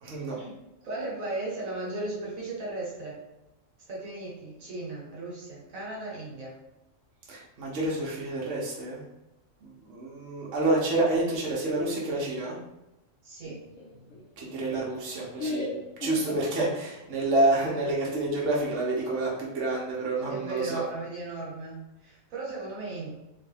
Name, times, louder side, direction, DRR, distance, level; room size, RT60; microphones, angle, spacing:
voice 1, 0.0-0.4 7.3-9.0 9.6-12.6 14.4-15.7 16.0-20.8, right 2 dB, 60° right, -4 dB, 1.0 m, -28 dB
voice 2, 0.8-3.2 3.9-6.5 13.2-13.6 20.3-23.1, right 2 dB, 80° right, -4 dB, 1.5 m, -36 dB
Laughter, 13.4-17.1, left 1 dB, 75° left, 1.0 m, -37 dB
3.6 x 2.2 x 3.3 m, 0.96 s
omnidirectional pair, 1.4 m